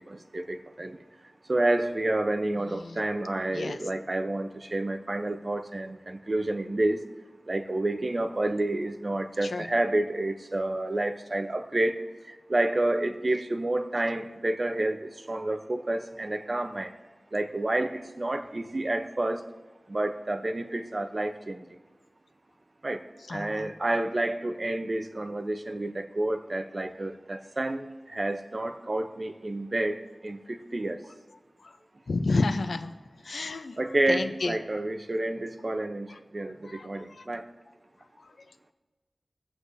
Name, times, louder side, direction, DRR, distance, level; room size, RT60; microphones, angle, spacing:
voice 1, 0.1-1.0 1.5-7.0 7.5-12.0 12.5-16.9 17.3-19.4 19.9-21.6 22.8-23.0 23.3-31.0 33.8-36.1 36.3-37.4, right 2 dB, 45° right, 8 dB, 0.7 m, -29 dB
voice 2, 2.6-3.0 3.5-3.8 9.4-9.7 23.3-23.7 31.6-31.8 32.1-32.9 33.2-33.8 34.1-34.5 36.1-36.2 36.6-37.3 38.2-38.3, left 3 dB, 85° left, 9 dB, 0.6 m, -31 dB
24.0 x 8.0 x 2.7 m, 1.3 s
wide cardioid pair, 65°, 0 cm